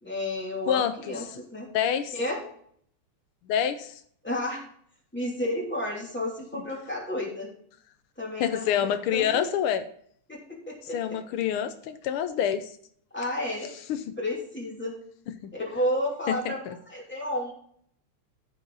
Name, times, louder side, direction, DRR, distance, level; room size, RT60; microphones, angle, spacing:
voice 1, 0.0-1.7 2.1-2.4 4.2-4.6 5.1-7.5 8.2-9.4 10.3-11.2 13.1-13.7 14.2-14.9 15.5-16.6 16.9-17.5, left 1 dB, 5° left, -4 dB, 2.7 m, -31 dB
voice 2, 1.7-2.2 3.5-4.0 8.4-9.8 10.8-12.7 13.9-14.1 15.4-15.5 16.3-16.7, left 9 dB, 85° left, 11 dB, 1.5 m, -27 dB
14.0 x 5.4 x 3.9 m, 0.63 s
omnidirectional pair, 2.4 m